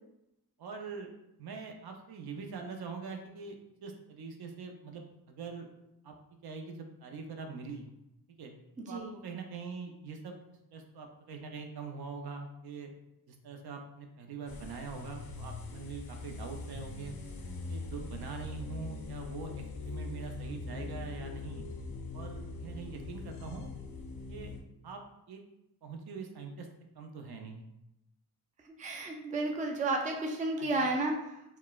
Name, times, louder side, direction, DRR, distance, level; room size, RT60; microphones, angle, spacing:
voice 1, 0.6-1.1 1.4-5.0 5.3-5.7 6.0-6.1 6.4-7.9 8.4-8.5 8.9-10.4 10.7-12.9 13.3-17.2 17.7-21.7 22.1-23.7 24.3-24.5 24.8-25.0 25.3-25.4 25.8-26.7 27.0-27.6 30.6-30.7, right 5 dB, 70° right, 4 dB, 0.5 m, -43 dB
voice 2, 8.8-9.1 28.6-31.4, right 2 dB, 20° right, 1 dB, 0.4 m, -32 dB
sound 1, 14.5-24.6, left 3 dB, 85° left, 0.6 m, -42 dB
4.3 x 2.1 x 2.2 m, 0.86 s
wide cardioid pair, 125°, 39 cm